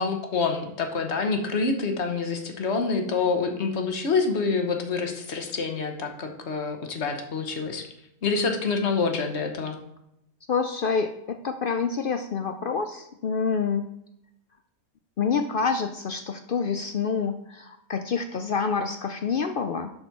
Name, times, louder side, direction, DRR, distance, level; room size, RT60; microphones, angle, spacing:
voice 1, 0.0-7.8 8.2-9.8, left 4 dB, 50° left, 5 dB, 1.3 m, -27 dB
voice 2, 10.5-13.9 15.2-19.9, left 5 dB, 70° left, 7 dB, 0.5 m, -27 dB
11.5 x 4.2 x 4.6 m, 0.81 s
omnidirectional pair, 1.5 m